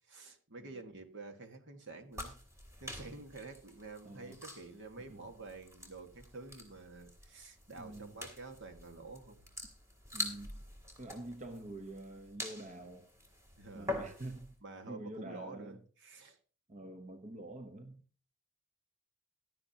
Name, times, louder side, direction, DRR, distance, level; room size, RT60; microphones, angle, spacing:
voice 1, 0.1-2.4 2.8-9.5 13.6-14.0 14.6-16.4, right 3 dB, 60° right, 1.7 m, -49 dB
sound 1, 2.1-14.5, left 1 dB, 15° right, 3.0 m, -46 dB
voice 2, 4.0-4.4 5.1-5.2 7.8-8.2 10.1-10.6 11.0-13.1 13.7-14.6 14.9-15.8 16.7-18.0, right 1 dB, 35° right, 0.9 m, -46 dB
17.0 x 12.0 x 2.9 m
head